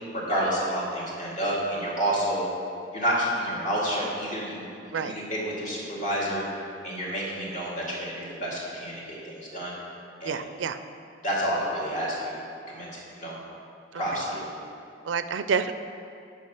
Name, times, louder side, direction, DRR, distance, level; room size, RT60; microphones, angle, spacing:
voice 1, 0.1-2.5 2.9-4.6 5.0-6.4 6.8-9.7 10.2-10.4 11.2-12.4 12.7-13.4 14.0-14.5, equal, 45° left, -6 dB, 2.2 m, -29 dB
voice 2, 10.2-10.8 13.9-14.2 15.0-15.7, right 6 dB, 85° right, 11 dB, 0.4 m, -29 dB
9.2 x 5.1 x 5.9 m, 2.6 s
head